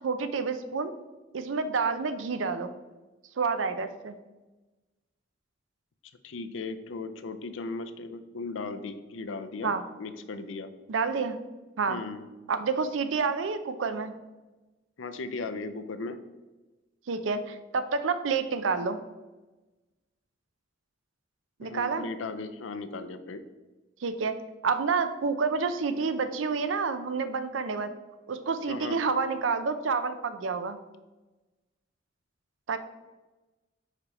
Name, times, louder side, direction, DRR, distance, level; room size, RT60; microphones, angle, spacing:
voice 1, 0.0-0.9 1.3-2.7 3.4-4.2 9.6-9.8 10.9-11.4 11.8-12.0 12.5-14.1 17.1-19.0 21.6-22.1 24.0-24.3 24.6-27.9 28.3-30.8 32.7-32.8, right 5 dB, 80° right, 10 dB, 0.5 m, -29 dB
voice 2, 6.2-9.7 10.0-10.7 11.9-12.2 15.0-16.2 21.6-23.4 28.7-29.0, left 3 dB, 85° left, 10 dB, 0.5 m, -37 dB
5.1 x 4.8 x 4.2 m, 1.1 s
head